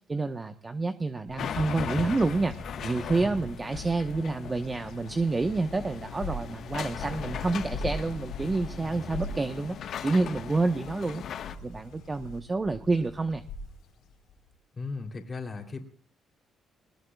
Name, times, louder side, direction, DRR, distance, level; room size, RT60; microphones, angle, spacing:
voice 1, 0.1-2.5 2.8-9.8 10.0-11.2 11.6-13.4, right 3 dB, 25° right, 8 dB, 1.1 m, -28 dB
Bird vocalization bird call bird song, 1.3-14.5, left 2 dB, 90° left, 4.0 m, -42 dB
sound 1, 1.4-11.5, left 7 dB, 65° left, 1.3 m, -38 dB
voice 2, 14.8-15.8, left 4 dB, 35° left, 3 dB, 3.2 m, -36 dB
21.5 x 20.0 x 2.4 m, 0.41 s
cardioid pair, 90°, 0 cm